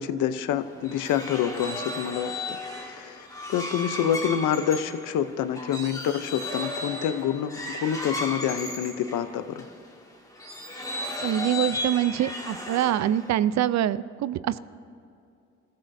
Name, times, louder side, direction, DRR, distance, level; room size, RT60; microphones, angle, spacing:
voice 1, 0.0-9.7, left 9 dB, 85° left, 12 dB, 0.7 m, -27 dB
sound 1, 0.6-9.7 10.3-13.3, left 1 dB, 10° left, 2.1 m, -35 dB
voice 2, 11.2-14.6, right 11 dB, 65° right, 16 dB, 0.5 m, -25 dB
27.5 x 14.5 x 2.7 m, 2.6 s
cardioid pair, 90°, 30 cm